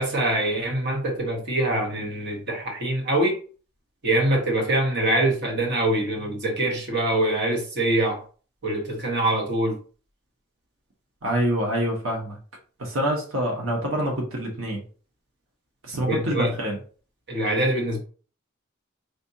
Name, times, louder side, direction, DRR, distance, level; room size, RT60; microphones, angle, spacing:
voice 1, 0.0-3.4 4.0-8.2 8.6-9.8 16.0-16.5 17.3-18.0, right 1 dB, 55° right, 0 dB, 1.3 m, -24 dB
voice 2, 11.2-12.4 12.8-14.8 15.8-16.8, equal, 90° right, 0 dB, 1.1 m, -26 dB
5.0 x 2.7 x 2.8 m, 0.39 s
head